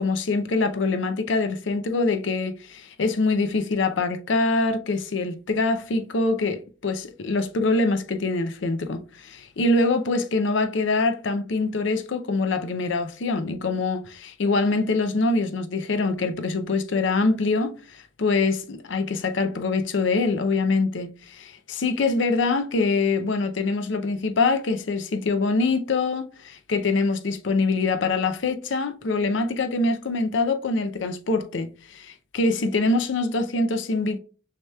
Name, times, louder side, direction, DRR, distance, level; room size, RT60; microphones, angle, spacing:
voice 1, 0.0-34.2, left 3 dB, 75° left, 0.6 m, -24 dB
6.3 x 2.9 x 2.3 m
head